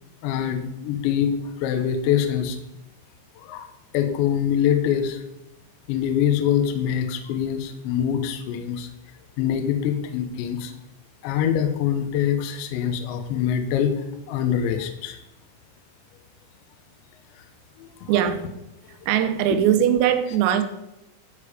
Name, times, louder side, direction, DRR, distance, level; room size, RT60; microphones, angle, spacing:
voice 1, 0.2-2.6 3.4-5.2 5.9-8.9 9.4-10.7 11.2-15.2 17.8-18.1 18.9-19.0, left 9 dB, 75° left, 6 dB, 2.9 m, -24 dB
voice 2, 18.1-18.5 19.1-20.6, right 10 dB, 90° right, 8 dB, 3.6 m, -20 dB
12.0 x 6.8 x 5.0 m, 0.91 s
omnidirectional pair, 5.9 m